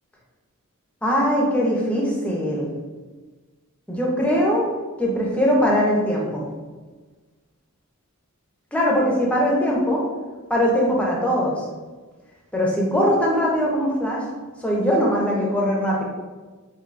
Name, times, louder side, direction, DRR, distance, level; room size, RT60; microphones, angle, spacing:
voice 1, 1.0-2.7 3.9-4.6 5.0-6.4 8.7-10.1 10.5-11.5 12.5-14.2 14.6-16.0, equal, 5° left, -3 dB, 0.7 m, -21 dB
4.4 x 2.7 x 2.5 m, 1.3 s
head